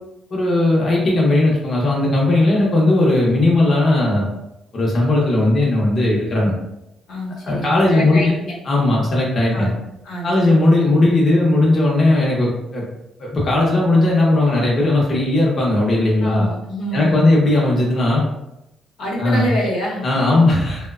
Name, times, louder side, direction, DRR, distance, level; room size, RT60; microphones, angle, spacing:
voice 1, 0.3-4.3 4.7-6.5 7.4-8.3 8.7-9.7 10.2-12.8 13.2-16.5 16.9-18.2 19.2-19.5 20.0-20.9, left 2 dB, 45° left, -4 dB, 0.7 m, -17 dB
voice 2, 7.1-8.6 9.5-9.8 10.0-10.7 16.2-17.5 19.0-20.5, equal, 75° left, -5 dB, 0.8 m, -27 dB
2.9 x 2.1 x 2.3 m, 0.87 s
cardioid pair, 90°, 0 cm